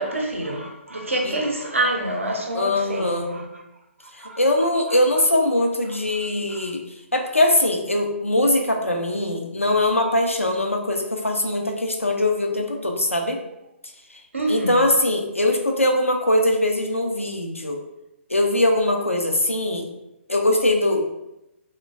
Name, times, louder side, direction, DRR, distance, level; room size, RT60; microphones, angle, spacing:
voice 1, 0.0-3.5 4.2-4.4 14.3-14.8, right 1 dB, 75° right, 1 dB, 0.6 m, -26 dB
voice 2, 2.5-3.3 4.1-6.8 7.1-13.4 14.1-14.2 14.5-17.8 18.3-19.9 20.3-21.0, left 1 dB, 85° left, 2 dB, 0.5 m, -21 dB
3.1 x 2.1 x 2.4 m, 0.90 s
figure-of-eight pair, 130°, 7 cm